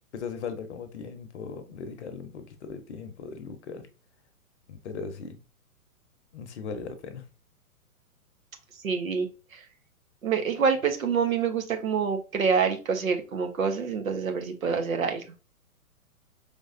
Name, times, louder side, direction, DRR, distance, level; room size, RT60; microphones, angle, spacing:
voice 1, 0.1-3.9 4.7-5.4 6.3-7.3, left 5 dB, 50° left, 8 dB, 0.9 m, -38 dB
voice 2, 8.8-9.6 10.2-15.2, right 6 dB, 65° right, 6 dB, 1.0 m, -26 dB
5.2 x 3.5 x 2.6 m, 0.33 s
figure-of-eight pair, 115°, 44 cm